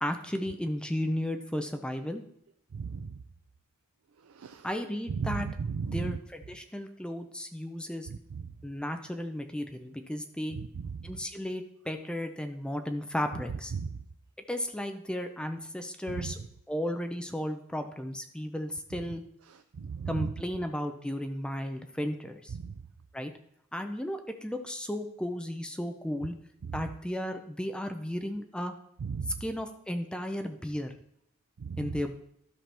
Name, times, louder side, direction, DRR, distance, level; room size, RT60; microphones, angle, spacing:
voice 1, 0.0-2.2 4.6-5.5 5.9-8.1 8.6-10.6 11.0-13.7 14.5-16.4 16.7-19.2 20.1-22.5 23.1-23.3 23.7-26.3 26.7-28.7 29.4-30.9 31.8-32.1, left 1 dB, 5° left, 6 dB, 0.5 m, -34 dB
voice 2, 2.7-3.1 4.4-4.7 5.2-6.2 8.1-8.2 10.5-10.8 13.7-13.9 16.1-16.3 19.8-20.3 26.6-26.7 29.0-29.4 31.6-31.9, right 5 dB, 80° right, 8 dB, 0.4 m, -34 dB
12.5 x 5.8 x 3.4 m, 0.72 s
head